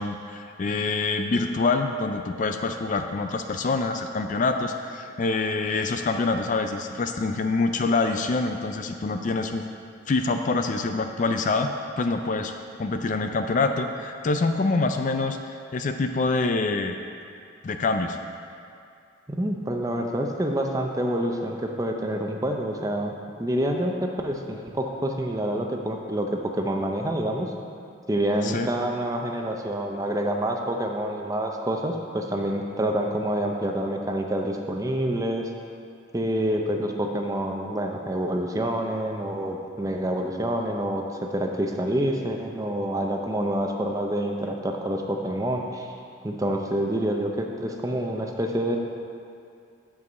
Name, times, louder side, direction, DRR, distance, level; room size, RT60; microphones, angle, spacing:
voice 1, 0.0-9.7 10.1-11.7 12.0-15.4 15.7-17.0 17.6-18.2 28.4-28.7, left 3 dB, 40° left, 6 dB, 0.3 m, -25 dB
voice 2, 19.3-23.1 23.4-27.5 28.1-35.5 36.1-45.9 46.2-48.8, right 1 dB, 15° right, 2 dB, 0.6 m, -27 dB
7.5 x 4.7 x 6.8 m, 2.4 s
head